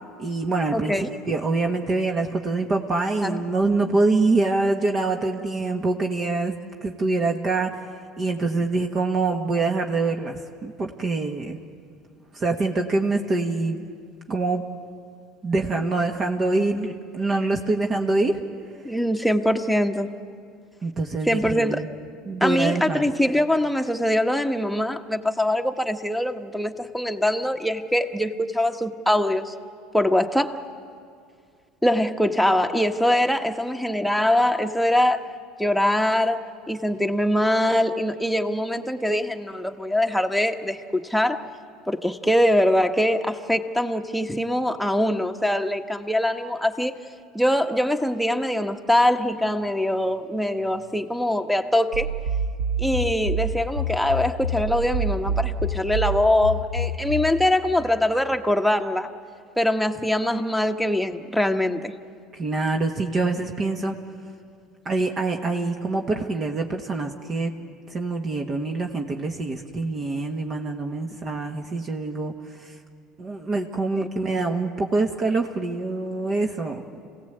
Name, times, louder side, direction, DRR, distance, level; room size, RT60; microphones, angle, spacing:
voice 1, 0.2-6.5 6.8-7.8 8.2-11.6 12.3-13.8 14.3-14.6 15.4-18.4 20.8-21.9 22.2-23.0 62.3-64.0 64.8-67.5 67.9-72.3 72.6-72.7 73.2-76.8, right 3 dB, 35° right, 3 dB, 1.5 m, -25 dB
voice 2, 0.7-1.1 3.2-3.4 18.8-20.1 21.2-21.8 22.4-29.5 29.9-30.6 31.8-35.3 35.6-41.4 41.9-46.9 47.3-52.1 52.8-59.1 59.6-61.9 74.0-74.1, left 1 dB, ahead, 4 dB, 1.3 m, -23 dB
sound 1, 51.9-57.4, right 1 dB, 90° right, 1.8 m, -27 dB
27.0 x 17.0 x 8.1 m, 2.3 s
hypercardioid pair, 85°, 0 cm